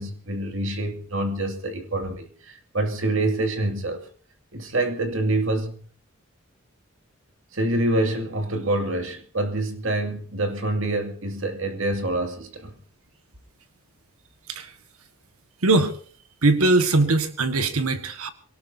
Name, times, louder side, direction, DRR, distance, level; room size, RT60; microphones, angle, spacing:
voice 1, 0.0-4.0 4.5-5.8 7.5-12.7, right 1 dB, 65° right, 2.4 m, -26 dB
voice 2, 15.6-16.0 16.4-18.3, right 2 dB, 90° right, 1.6 m, -21 dB
26.5 x 18.0 x 2.7 m
head